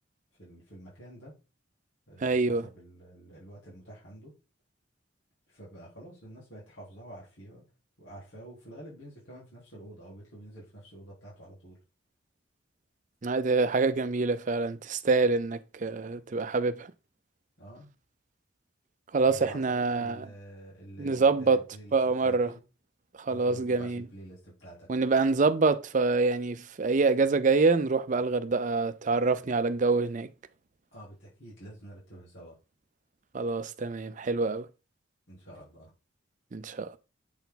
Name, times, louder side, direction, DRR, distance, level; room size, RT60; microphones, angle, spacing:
voice 1, 0.4-1.4 2.1-4.4 5.5-7.6 8.0-11.8 17.6-17.9 19.2-22.0 22.2-22.6 23.3-24.9 30.9-32.6 35.3-35.9, right 1 dB, 85° left, 4.2 m, -48 dB
voice 2, 2.2-2.6 13.2-16.9 19.1-20.2 21.0-21.6 21.9-22.5 23.2-24.0 24.9-30.3 33.3-34.7 36.5-37.0, right 3 dB, 40° right, 0.5 m, -26 dB
8.0 x 4.5 x 4.0 m
head